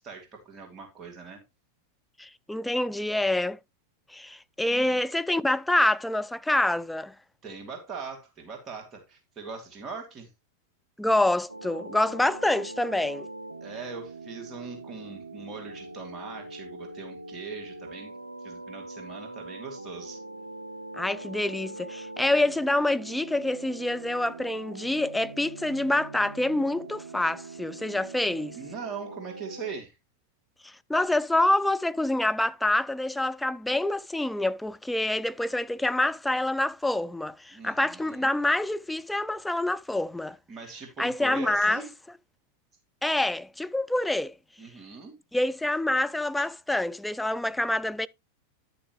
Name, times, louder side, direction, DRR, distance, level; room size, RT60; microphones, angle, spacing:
voice 1, 0.0-1.4 4.7-5.0 7.4-10.3 13.6-18.1 18.4-20.2 28.5-29.9 37.5-38.3 40.5-41.9 44.6-45.2, right 5 dB, 30° right, 3.2 m, -41 dB
voice 2, 2.2-3.6 4.1-7.1 11.0-13.3 21.0-28.6 30.6-40.4 41.0-41.8 43.0-44.3 45.3-48.1, left 1 dB, 5° left, 0.4 m, -26 dB
sound 1, 11.5-29.8, right 2 dB, 90° right, 0.6 m, -42 dB
11.5 x 6.9 x 3.1 m
figure-of-eight pair, 90°, 0 cm